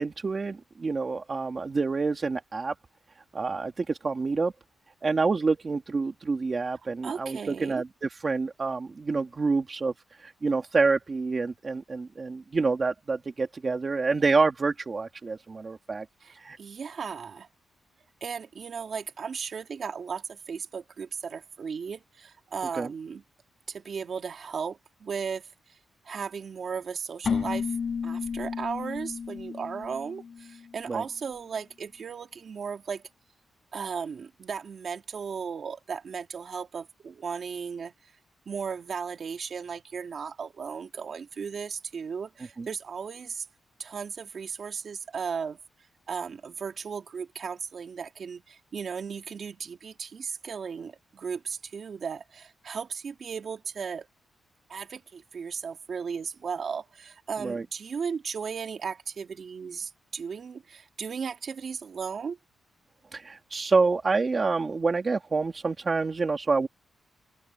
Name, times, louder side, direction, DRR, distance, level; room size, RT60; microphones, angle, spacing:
voice 1, 0.0-2.7 3.3-4.5 5.0-9.9 10.2-16.1 16.3-16.6 22.7-22.9 30.9-31.0 42.6-42.7 57.4-57.6 63.1-66.7, right 4 dB, 30° right, 1.9 m, -27 dB
voice 2, 7.0-7.8 16.2-17.5 18.2-23.2 23.7-25.8 26.0-27.8 28.0-33.0 33.7-37.9 38.5-43.4 43.8-45.6 46.1-54.1 54.7-62.4, right 6 dB, 50° right, 2.3 m, -36 dB
Keyboard (musical), 27.2-30.9, left 6 dB, 45° left, 5.3 m, -32 dB
open air
wide cardioid pair, 160°, 0 cm